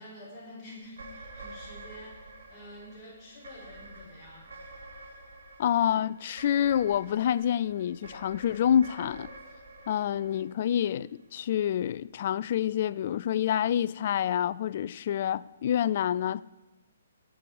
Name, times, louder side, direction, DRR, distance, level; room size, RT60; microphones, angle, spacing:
voice 1, 0.0-4.5, left 1 dB, 20° left, 5.9 m, -48 dB
sound 1, 0.9-11.4, right 2 dB, 70° right, 3.7 m, -49 dB
voice 2, 5.6-9.3 9.9-16.4, left 10 dB, 45° left, 0.4 m, -27 dB
20.5 x 8.6 x 4.8 m
figure-of-eight pair, 130°, 0 cm